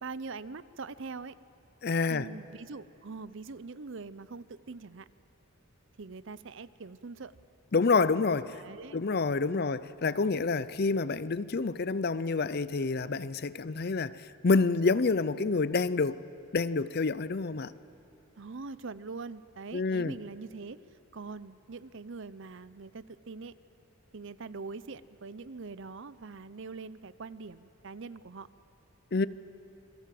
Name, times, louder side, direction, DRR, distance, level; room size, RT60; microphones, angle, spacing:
voice 1, 0.0-1.3 2.1-5.1 6.0-7.3 8.5-9.0 9.5-9.8 18.4-20.8 21.1-23.5 24.1-28.5, right 4 dB, 60° right, 0.6 m, -43 dB
voice 2, 1.8-2.3 7.7-8.6 8.9-16.2 16.5-17.7 19.7-20.1 29.1-29.3, left 4 dB, 45° left, 0.5 m, -28 dB
28.5 x 22.5 x 7.7 m
head